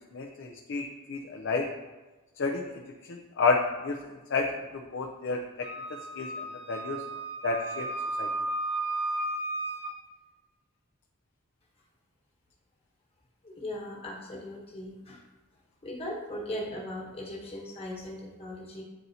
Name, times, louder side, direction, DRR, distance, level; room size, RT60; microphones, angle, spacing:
voice 1, 0.1-1.6 2.4-2.8 3.1-4.5 4.7-5.4 6.2-6.3 6.7-7.0 7.4-7.9 8.2-8.3, left 4 dB, 55° left, 1 dB, 0.5 m, -30 dB
Wind instrument woodwind instrument, 5.6-9.9, right 2 dB, 25° right, 0.8 m, -34 dB
voice 2, 13.4-15.2 15.8-18.8, left 1 dB, 25° left, -5 dB, 1.4 m, -38 dB
9.0 x 4.0 x 2.8 m, 1.2 s
head